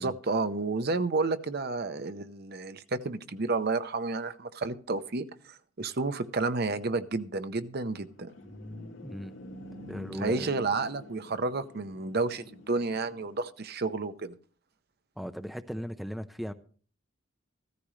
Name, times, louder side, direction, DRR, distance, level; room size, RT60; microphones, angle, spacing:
voice 1, 0.0-8.3 10.2-14.3, right 3 dB, 50° right, 11 dB, 0.7 m, -31 dB
sound 1, 7.9-13.5, left 1 dB, 70° left, 2.6 m, -46 dB
voice 2, 9.0-9.4 9.9-10.5 15.2-16.5, equal, ahead, 9 dB, 0.5 m, -37 dB
15.0 x 13.5 x 3.2 m, 0.43 s
head